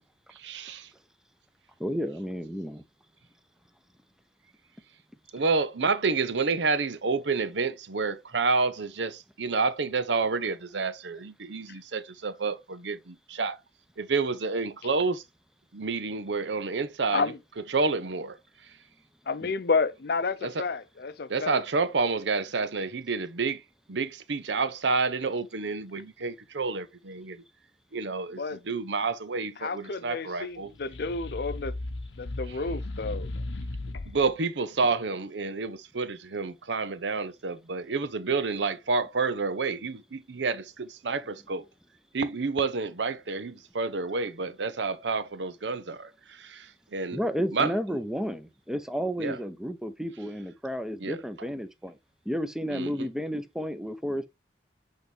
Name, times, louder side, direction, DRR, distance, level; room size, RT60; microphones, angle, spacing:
voice 1, 0.3-0.9 5.3-13.6 14.0-15.2 15.7-17.2 17.7-18.4 20.4-20.6 21.3-23.6 23.9-27.4 27.9-30.7 34.1-41.7 42.1-47.2 47.5-47.7 49.2-49.4 51.0-51.2 52.7-53.1, right 4 dB, 75° right, 0.7 m, -29 dB
voice 2, 1.8-2.8 19.4-19.5 47.1-52.0 52.3-54.3, equal, 5° right, 0.7 m, -32 dB
voice 3, 19.3-21.6 28.4-28.6 29.6-31.8 32.2-33.3, left 4 dB, 55° left, 0.6 m, -30 dB
sound 1, 30.7-34.3, left 2 dB, 85° left, 0.8 m, -36 dB
8.5 x 4.0 x 3.3 m
head